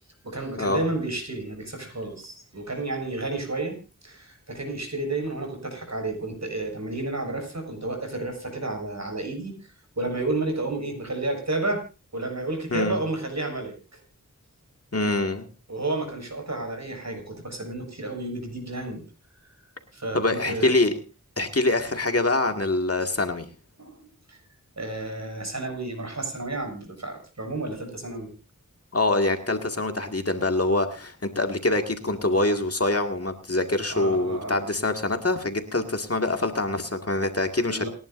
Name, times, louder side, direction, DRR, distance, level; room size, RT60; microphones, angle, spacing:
voice 1, 0.2-3.8 4.0-11.8 12.1-14.0 15.7-19.0 19.4-20.7 23.8-24.4 24.8-28.3 33.9-34.6 37.7-37.9, right 2 dB, 55° right, 3 dB, 6.9 m, -31 dB
voice 2, 14.9-15.5 20.1-20.9 21.4-23.5 28.9-37.9, left 2 dB, 45° left, 5 dB, 2.1 m, -25 dB
28.5 x 11.0 x 2.6 m, 0.32 s
wide cardioid pair, 50°, 32 cm